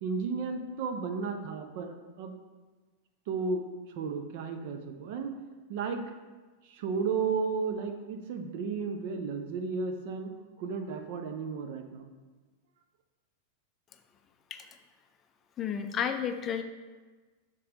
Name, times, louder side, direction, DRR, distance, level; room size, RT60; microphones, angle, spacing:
voice 1, 0.0-2.3 3.3-3.6 4.0-5.3 5.7-6.0 6.7-10.3 10.6-12.1, right 5 dB, 50° right, 6 dB, 0.6 m, -33 dB
voice 2, 15.6-16.6, left 8 dB, 25° left, 7 dB, 0.4 m, -31 dB
6.6 x 3.7 x 4.0 m, 1.3 s
figure-of-eight pair, 90°, 0 cm